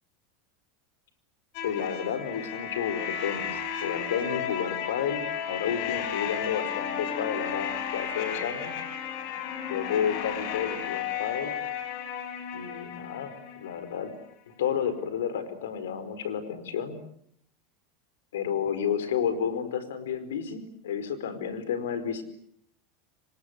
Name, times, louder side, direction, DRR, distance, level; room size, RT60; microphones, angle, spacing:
sound 1, 1.5-14.2, left 8 dB, 60° left, 5.1 m, -34 dB
voice 1, 1.6-8.7 9.7-11.5 12.5-14.1 14.6-17.0 18.3-22.2, left 8 dB, 90° left, 12 dB, 4.7 m, -31 dB
28.0 x 25.0 x 8.1 m, 0.68 s
supercardioid pair, 110°, 0 cm